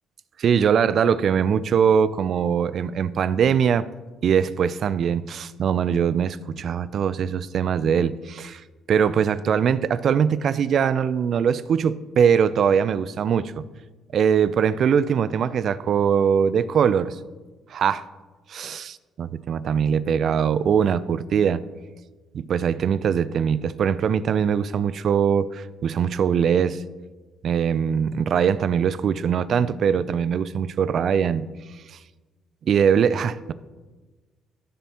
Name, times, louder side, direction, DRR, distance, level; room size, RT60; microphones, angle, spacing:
voice 1, 0.4-3.9 4.2-13.6 14.1-17.2 17.7-18.1 18.5-21.6 22.3-26.8 27.4-31.5 31.9-32.0 32.7-33.5, right 7 dB, 60° right, 0.4 m, -22 dB
15.0 x 7.0 x 2.9 m
hypercardioid pair, 55°, 0 cm